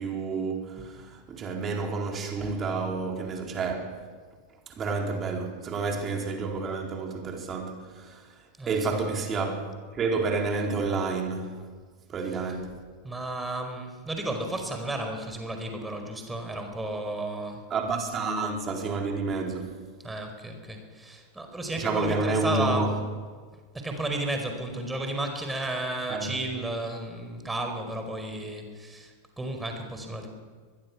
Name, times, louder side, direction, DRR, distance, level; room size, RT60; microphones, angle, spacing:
voice 1, 0.0-4.0 4.8-8.2 8.7-11.6 12.1-12.8 17.7-19.8 21.8-22.9 26.1-26.3, right 4 dB, 25° right, 4.3 m, -29 dB
voice 2, 8.6-8.9 13.0-17.6 20.0-22.9 23.7-30.3, right 2 dB, 10° right, 4.9 m, -33 dB
24.0 x 21.0 x 6.1 m
figure-of-eight pair, 90°, 0 cm